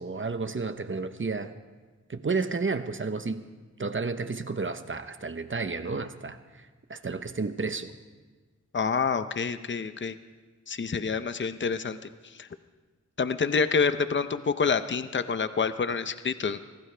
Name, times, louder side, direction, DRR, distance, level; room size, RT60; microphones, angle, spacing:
voice 1, 0.0-1.5 2.1-3.4 3.8-7.9, right 4 dB, 45° right, 10 dB, 0.9 m, -32 dB
voice 2, 8.7-10.2 10.7-12.0 12.4-12.5 13.2-16.6, left 5 dB, 40° left, 11 dB, 0.6 m, -27 dB
24.5 x 17.5 x 3.3 m, 1.3 s
wide cardioid pair, 85°, 29 cm